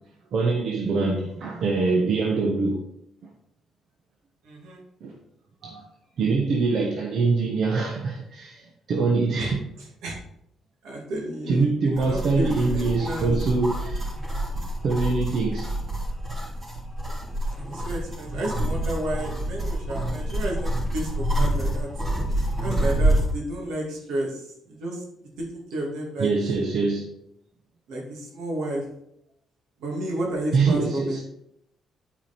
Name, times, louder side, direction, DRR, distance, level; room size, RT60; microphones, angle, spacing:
voice 1, 0.3-2.8 5.0-5.2 5.6-5.8 6.2-9.7 11.5-14.1 14.8-15.7 26.2-27.1 30.5-31.2, right 4 dB, 65° right, 1.1 m, -24 dB
voice 2, 4.4-4.8 9.4-9.5 10.0-10.2 10.8-11.7 12.0-13.3 17.0-17.1 17.6-21.9 22.6-25.0 25.4-26.3 27.9-28.9 29.8-31.2, right 1 dB, 85° right, 2.4 m, -31 dB
sound 1, 12.0-23.3, right 1 dB, 35° right, 3.3 m, -27 dB
8.8 x 4.9 x 4.4 m
cardioid pair, 90°, 0 cm